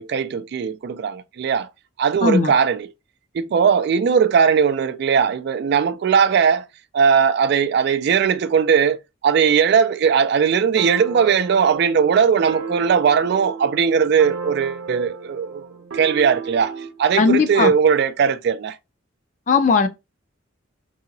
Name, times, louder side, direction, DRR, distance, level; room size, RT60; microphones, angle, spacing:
voice 1, 0.0-1.7 2.0-2.9 3.3-6.6 6.9-15.7 15.9-18.8, right 6 dB, 55° right, 0.3 m, -19 dB
voice 2, 2.2-2.5 17.2-17.7 19.5-19.9, left 4 dB, 40° left, 0.4 m, -17 dB
sound 1, 10.8-17.0, right 4 dB, 85° right, 0.6 m, -34 dB
2.8 x 2.7 x 2.6 m
head